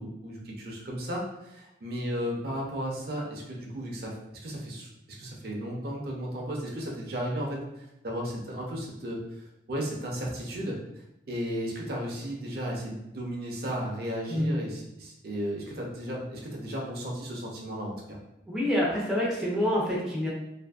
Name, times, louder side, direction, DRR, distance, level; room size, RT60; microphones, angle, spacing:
voice 1, 0.0-4.1 4.4-4.9 5.2-9.2 9.7-18.2, equal, 55° right, -1 dB, 0.5 m, -34 dB
voice 2, 18.5-20.3, left 1 dB, ahead, -6 dB, 0.4 m, -27 dB
2.5 x 2.5 x 2.3 m, 0.90 s
head